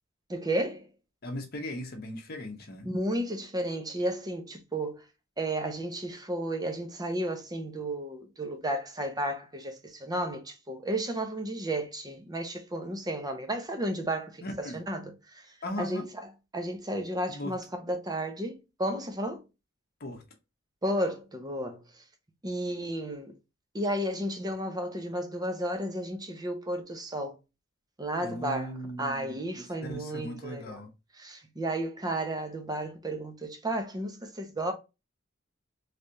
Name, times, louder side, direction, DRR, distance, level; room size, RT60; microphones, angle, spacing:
voice 1, 0.3-0.9 2.8-5.0 5.4-15.5 15.8-19.4 20.8-21.8 22.4-23.4 23.7-27.4 28.0-30.8 31.1-34.7, right 1 dB, 20° right, 0.8 m, -33 dB
voice 2, 1.2-2.9 14.4-14.8 15.6-16.0 17.3-17.5 20.0-20.2 28.2-29.4 29.8-30.9, left 1 dB, 50° left, 0.8 m, -38 dB
3.3 x 3.3 x 2.6 m
head